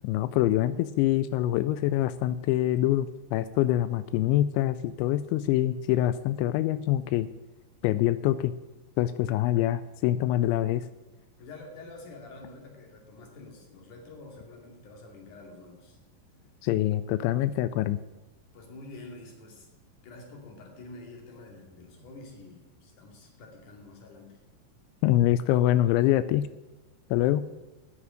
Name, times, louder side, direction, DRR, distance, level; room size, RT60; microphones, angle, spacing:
voice 1, 0.0-7.3 7.8-8.5 9.0-10.9 16.6-18.0 25.0-26.5 27.1-27.4, left 13 dB, 90° left, 14 dB, 2.9 m, -25 dB
voice 2, 11.4-16.0 18.5-19.7 20.0-24.4, left 2 dB, 50° left, 1 dB, 3.7 m, -47 dB
9.7 x 8.6 x 8.9 m, 1.1 s
omnidirectional pair, 5.2 m